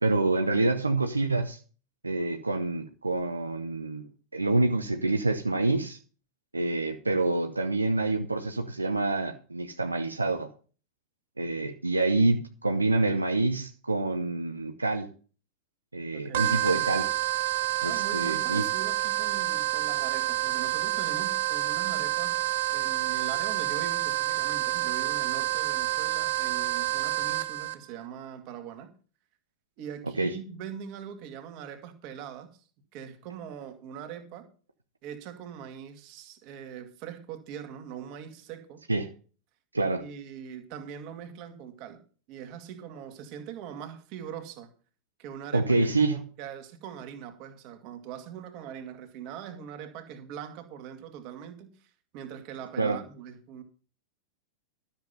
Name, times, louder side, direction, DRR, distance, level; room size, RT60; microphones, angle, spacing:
voice 1, 0.0-1.6 2.0-4.1 4.3-6.0 6.5-10.5 11.4-15.1 15.9-17.1 17.8-18.6 30.2-30.4 38.9-39.1 39.7-40.1 45.5-46.2 52.8-53.0, right 2 dB, 80° right, 0.9 m, -27 dB
voice 2, 16.1-16.6 17.8-28.9 29.8-32.7 32.9-34.5 35.0-38.8 40.0-42.0 42.3-44.7 45.2-45.7 46.1-53.6, right 8 dB, 40° right, 2.2 m, -42 dB
sound 1, 16.3-27.8, right 16 dB, 60° right, 1.0 m, -28 dB
13.0 x 7.3 x 5.8 m
figure-of-eight pair, 90°, 0 cm